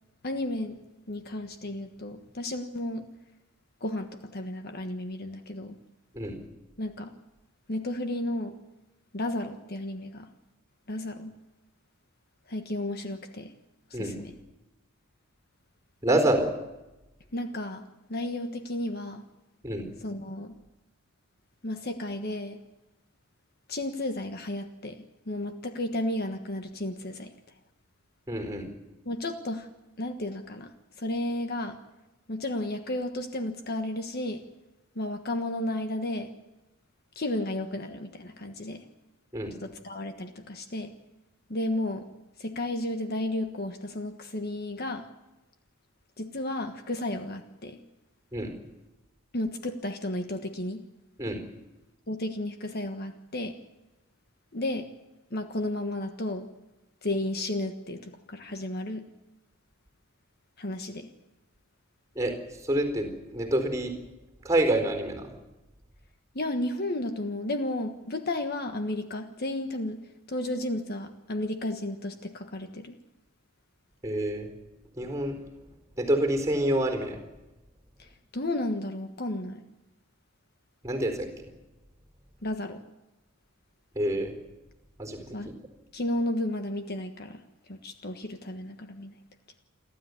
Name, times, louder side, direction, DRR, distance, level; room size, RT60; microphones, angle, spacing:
voice 1, 0.2-0.8 1.1-3.1 3.8-5.8 6.8-7.1 7.7-8.6 9.1-10.3 10.9-11.3 12.5-13.5 13.9-14.3 17.3-19.2 20.0-20.5 21.6-22.6 23.7-27.3 29.0-29.7 30.0-31.8 32.3-34.4 34.9-36.3 37.1-38.8 39.5-40.9 41.5-42.1 42.4-45.1 46.2-47.8 49.3-50.8 52.1-53.6 54.5-54.9 55.3-56.5 57.0-59.0 60.6-61.1 66.3-72.9 78.0-79.6 82.4-82.8 85.3-85.5 85.9-87.4 87.7-89.1, left 1 dB, 45° left, 7 dB, 1.4 m, -33 dB
voice 2, 16.0-16.5 19.6-19.9 28.3-28.7 39.3-39.5 48.3-48.5 51.2-51.4 62.1-62.4 62.6-63.9 64.4-65.3 74.0-74.5 75.0-75.4 76.0-77.2 80.8-81.3 83.9-84.3 85.0-85.3, right 1 dB, 15° right, 5 dB, 4.3 m, -27 dB
29.0 x 12.5 x 9.8 m, 1.0 s
head